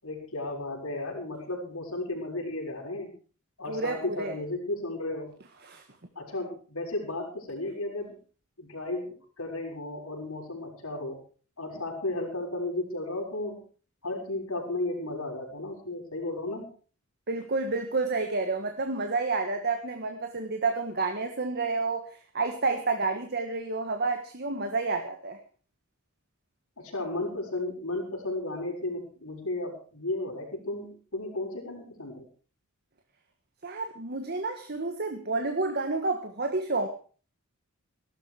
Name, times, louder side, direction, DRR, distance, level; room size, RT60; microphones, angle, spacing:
voice 1, 0.0-3.1 3.6-5.4 6.1-8.2 8.6-11.2 11.6-13.6 14.0-16.7 26.8-32.3, left 2 dB, 80° left, -1 dB, 6.4 m, -34 dB
voice 2, 3.7-4.3 5.6-5.8 17.3-25.4 33.6-36.9, right 3 dB, 50° right, 6 dB, 1.6 m, -30 dB
17.5 x 13.0 x 5.0 m, 0.40 s
head